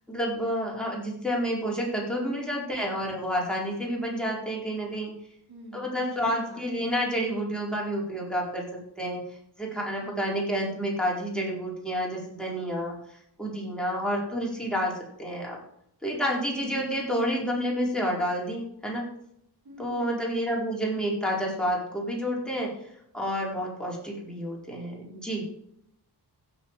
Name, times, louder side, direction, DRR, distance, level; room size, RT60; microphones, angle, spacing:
voice 1, 0.1-5.1 5.7-9.2 9.6-12.9 13.4-15.6 16.0-19.1 19.8-22.7 23.1-25.4, equal, ahead, -3 dB, 4.6 m, -29 dB
voice 2, 2.5-3.0 5.5-6.9 10.0-10.3 16.6-16.9 19.6-20.5, right 2 dB, 60° right, -2 dB, 3.8 m, -46 dB
16.0 x 7.1 x 4.8 m, 0.74 s
cardioid pair, 70°, 41 cm